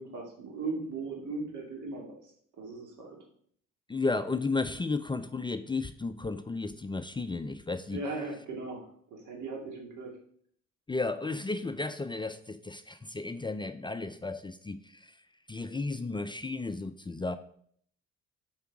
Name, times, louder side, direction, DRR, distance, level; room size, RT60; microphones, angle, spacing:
voice 1, 0.0-2.3 2.6-3.2 7.9-10.1, right 3 dB, 80° right, 0 dB, 2.2 m, -38 dB
voice 2, 3.9-8.0 10.9-15.1 15.5-17.4, left 3 dB, 15° left, 10 dB, 0.4 m, -33 dB
7.0 x 4.7 x 4.7 m, 0.62 s
cardioid pair, 90°, 30 cm